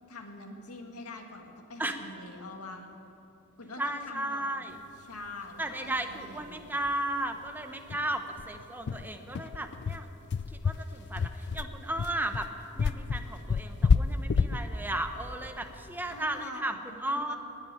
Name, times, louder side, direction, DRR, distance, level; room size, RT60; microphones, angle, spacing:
voice 1, 0.1-2.9 3.6-4.6 5.0-6.6 16.1-17.4, left 2 dB, 80° left, 3 dB, 1.9 m, -44 dB
voice 2, 3.8-4.8 5.6-10.1 10.5-12.5 12.7-17.4, right 1 dB, 10° right, 6 dB, 0.8 m, -35 dB
sound 1, 6.0-6.1 6.4-6.5 6.8-7.0 7.3-7.4 7.9-16.3, left 5 dB, 50° left, 0.4 m, -29 dB
20.5 x 7.1 x 9.0 m, 2.8 s
head